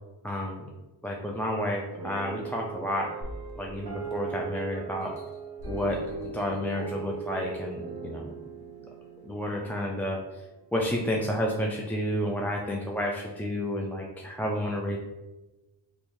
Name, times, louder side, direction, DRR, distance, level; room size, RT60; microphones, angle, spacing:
voice 1, 0.2-0.7 1.0-3.1 3.6-5.1 5.7-8.3 9.2-10.4 10.7-15.0, equal, 5° left, -1 dB, 0.3 m, -31 dB
sound 1, 2.0-10.5, right 5 dB, 50° right, 0.7 m, -39 dB
sound 2, 3.2-4.5 5.0-7.1 7.7-7.8, equal, 50° left, 0.8 m, -44 dB
3.5 x 2.6 x 3.0 m, 1.1 s
cardioid pair, 60°, 47 cm